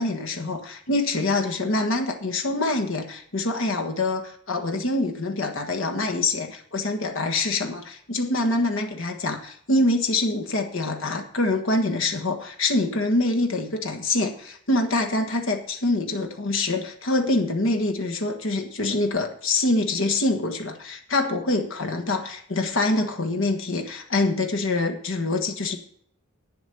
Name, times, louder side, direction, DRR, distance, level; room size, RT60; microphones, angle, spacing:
voice 1, 0.0-25.8, left 2 dB, 60° left, 4 dB, 1.3 m, -25 dB
9.2 x 8.0 x 6.8 m, 0.63 s
head